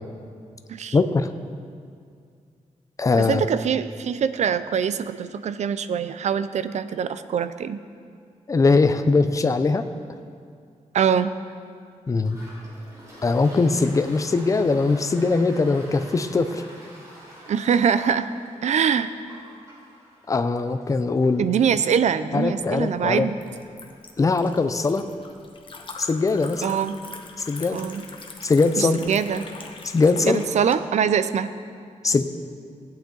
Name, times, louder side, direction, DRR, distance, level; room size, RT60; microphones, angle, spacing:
voice 1, 0.9-1.3 3.0-3.4 8.5-9.9 12.1-12.4 13.2-16.6 20.3-21.5 22.3-23.3 24.2-25.1 26.0-26.6 27.4-27.8 28.4-29.0 29.8-30.4 32.0-32.2, left 3 dB, 25° left, 10 dB, 0.5 m, -21 dB
voice 2, 3.2-7.8 10.9-11.3 17.5-18.3 18.6-19.1 21.4-23.4 26.6-27.0 27.7-28.0 28.8-29.5 30.2-31.5, right 7 dB, 65° right, 13 dB, 0.4 m, -23 dB
Toilet flush, 12.2-25.5, equal, 25° right, 3.2 m, -48 dB
Liquid, 22.4-30.7, left 4 dB, 40° left, 0.9 m, -43 dB
16.0 x 8.9 x 3.9 m, 2.2 s
wide cardioid pair, 165°, 13 cm